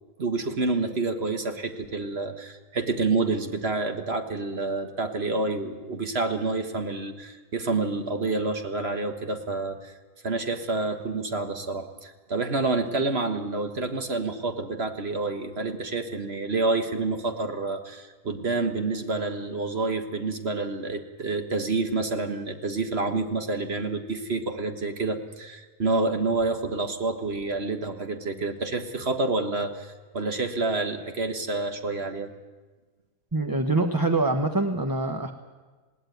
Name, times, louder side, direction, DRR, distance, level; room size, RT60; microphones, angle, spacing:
voice 1, 0.2-9.9 10.2-32.3, right 3 dB, 45° right, 6 dB, 1.6 m, -28 dB
voice 2, 33.3-35.3, right 2 dB, 15° right, 5 dB, 0.8 m, -24 dB
20.0 x 17.0 x 9.3 m, 1.3 s
omnidirectional pair, 1.6 m